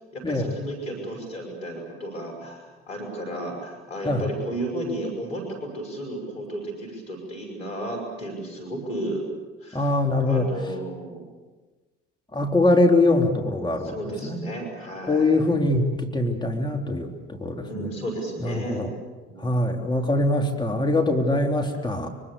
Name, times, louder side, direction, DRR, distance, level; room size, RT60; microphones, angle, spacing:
voice 1, 0.1-9.2 9.6-9.9 10.2-11.2 13.8-15.4 17.6-18.9 19.3-19.8, right 1 dB, 85° left, 1 dB, 5.7 m, -33 dB
voice 2, 9.7-10.5 12.3-14.0 14.2-14.4 15.0-17.9 18.4-18.9 19.4-22.1, left 2 dB, 15° left, 2 dB, 3.5 m, -23 dB
25.5 x 24.0 x 6.9 m, 1.3 s
hypercardioid pair, 55°, 30 cm